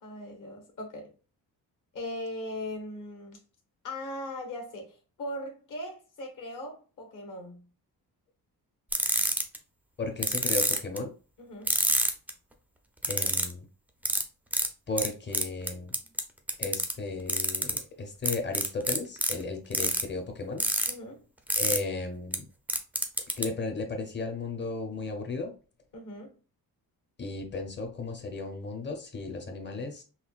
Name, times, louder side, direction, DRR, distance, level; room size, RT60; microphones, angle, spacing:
voice 1, 0.0-1.1 1.9-3.4 3.8-7.6 11.4-11.7 20.9-21.2 25.9-26.3, left 1 dB, 55° left, 1.2 m, -39 dB
sound 1, 8.9-9.6 10.2-11.0 11.7-12.3 13.0-13.5 14.0-14.2 14.5-14.7 15.0-15.1 15.3-16.2 16.5-16.9 17.3-17.8 18.2-19.3 19.7-20.0 20.6-20.9 21.5-21.8 22.3-22.4 22.7-23.4, right 1 dB, 5° right, 0.4 m, -26 dB
voice 2, 10.0-11.1 13.1-13.6 14.9-15.9 16.6-20.6 21.6-22.5 23.4-25.5 27.2-30.0, left 3 dB, 30° left, 0.7 m, -35 dB
5.6 x 2.3 x 2.3 m
wide cardioid pair, 160°, 37 cm